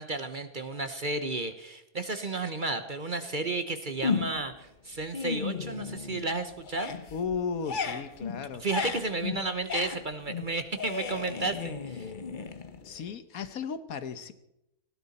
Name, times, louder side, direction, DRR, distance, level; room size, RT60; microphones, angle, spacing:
voice 1, 0.0-6.9 8.6-12.1, right 3 dB, 40° right, 9 dB, 1.0 m, -33 dB
sound 1, 4.0-4.6 4.9-6.3 6.6-13.1, left 5 dB, 40° left, 1.0 m, -35 dB
voice 2, 7.1-8.7 12.8-14.3, left 6 dB, 70° left, 12 dB, 1.5 m, -35 dB
19.0 x 16.0 x 4.2 m, 0.85 s
omnidirectional pair, 1.6 m